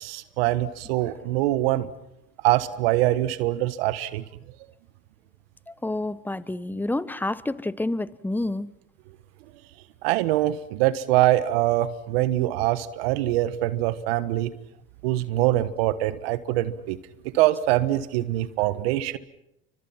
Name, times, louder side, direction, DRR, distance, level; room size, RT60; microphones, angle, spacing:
voice 1, 0.0-1.9 2.4-4.2 10.0-14.5 15.0-17.0 17.3-19.2, right 15 dB, 80° right, 14 dB, 1.4 m, -23 dB
voice 2, 5.7-8.7, left 2 dB, 5° left, 17 dB, 1.1 m, -29 dB
30.0 x 25.0 x 5.8 m, 0.82 s
hypercardioid pair, 80°, 30 cm